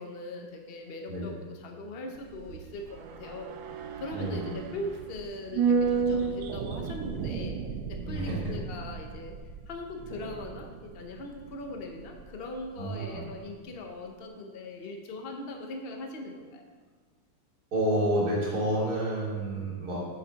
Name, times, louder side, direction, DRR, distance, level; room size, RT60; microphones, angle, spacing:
voice 1, 0.0-3.5 4.0-7.6 7.9-9.3 9.7-16.6, left 2 dB, 75° left, 3 dB, 0.5 m, -40 dB
sound 1, 2.2-12.6 12.9-13.0, right 5 dB, 80° right, 1.4 m, -33 dB
voice 2, 4.1-4.5 8.0-8.4 12.8-13.2 17.7-20.1, right 1 dB, 50° right, -6 dB, 2.9 m, -29 dB
8.3 x 7.4 x 3.9 m, 1.4 s
omnidirectional pair, 2.2 m